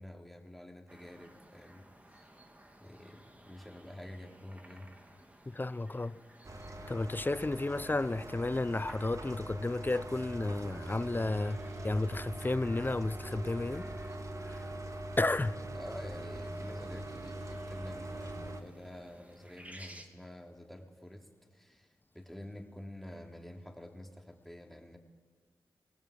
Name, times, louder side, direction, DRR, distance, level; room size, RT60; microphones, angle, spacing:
voice 1, 0.0-2.3 2.8-4.9 15.7-25.0, left 1 dB, ahead, 3.5 m, -48 dB
sound 1, 0.9-20.1, right 1 dB, 15° right, 2.7 m, -57 dB
voice 2, 5.5-6.2 6.9-13.9 14.5-14.6 15.2-15.6, left 2 dB, 25° left, 0.7 m, -32 dB
sound 2, 6.4-18.6, right 1 dB, 40° right, 1.9 m, -42 dB
21.0 x 18.5 x 8.6 m
cardioid pair, 45°, 8 cm